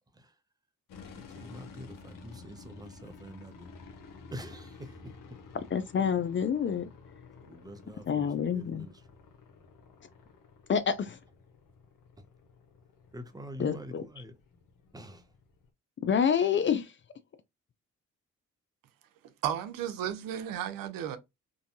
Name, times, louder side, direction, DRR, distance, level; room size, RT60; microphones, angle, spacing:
sound 1, 0.9-15.7, left 4 dB, 75° left, 0.7 m, -52 dB
voice 1, 1.1-3.7 4.3-5.1 7.4-9.0 13.1-14.4 14.9-15.3, equal, 10° right, 0.7 m, -46 dB
voice 2, 5.7-6.9 8.1-8.9 10.7-11.2 13.6-14.0 16.0-16.9, left 7 dB, 35° left, 0.4 m, -28 dB
voice 3, 19.4-21.2, right 10 dB, 85° right, 0.5 m, -33 dB
2.6 x 2.2 x 2.6 m
supercardioid pair, 60°, 33 cm